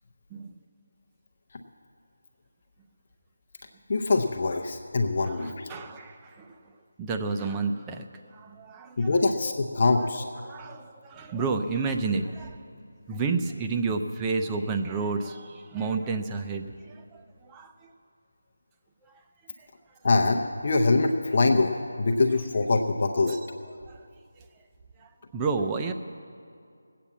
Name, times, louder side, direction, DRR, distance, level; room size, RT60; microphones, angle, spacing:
voice 1, 3.9-5.7 9.0-10.3 20.0-23.4, left 3 dB, 40° left, 5 dB, 0.8 m, -24 dB
voice 2, 5.2-6.5 7.0-8.0 8.3-9.2 9.4-9.5 10.4-12.6 13.1-17.7 19.6-19.7 23.3-23.4 23.8-24.0 25.0-25.9, right 4 dB, 10° right, 4 dB, 0.6 m, -31 dB
19.5 x 8.5 x 7.3 m, 2.4 s
figure-of-eight pair, 170°, 0 cm